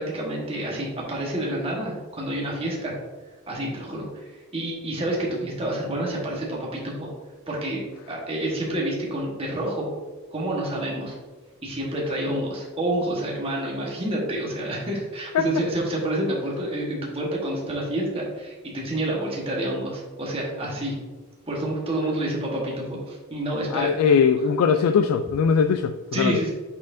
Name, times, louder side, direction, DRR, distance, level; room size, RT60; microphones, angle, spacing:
voice 1, 0.0-3.0 3.5-4.3 4.5-7.1 7.5-9.9 10.3-11.1 11.6-21.0 21.5-24.1 26.1-26.5, right 1 dB, 25° right, -3 dB, 1.3 m, -28 dB
voice 2, 23.7-26.4, left 6 dB, 80° left, 8 dB, 0.3 m, -20 dB
8.3 x 4.3 x 2.6 m, 1.3 s
head